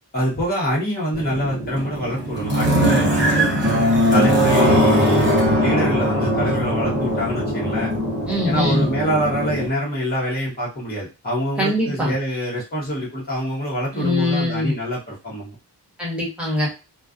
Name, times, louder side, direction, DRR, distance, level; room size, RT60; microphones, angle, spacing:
voice 1, 0.1-3.1 4.1-7.9 8.4-15.5, equal, 20° left, -6 dB, 0.9 m, -25 dB
sound 1, 1.1-9.7, equal, 25° right, 0.8 m, -20 dB
voice 2, 3.2-3.7 8.3-8.9 11.6-12.1 13.9-14.7 16.0-16.7, left 1 dB, 5° right, -5 dB, 1.1 m, -23 dB
2.3 x 2.3 x 2.4 m, 0.28 s
wide cardioid pair, 115°, 43 cm